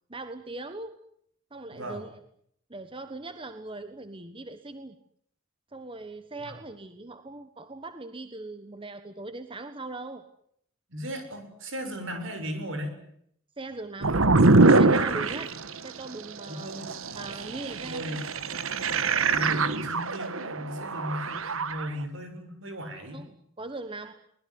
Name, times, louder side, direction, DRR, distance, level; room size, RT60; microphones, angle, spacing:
voice 1, 0.1-1.0 1.5-2.1 2.7-4.9 5.7-10.2 13.6-14.2 14.7-15.5 15.8-16.7 17.1-18.2 23.1-23.3 23.6-24.1, right 2 dB, 25° right, 9 dB, 1.3 m, -40 dB
voice 2, 1.7-2.0 6.4-6.5 10.9-12.9 16.5-18.2 19.3-23.2, equal, 65° right, 7 dB, 7.0 m, -37 dB
sound 1, 14.0-15.8 16.4-21.9, right 3 dB, 85° right, 1.5 m, -23 dB
24.0 x 20.5 x 9.6 m, 0.71 s
head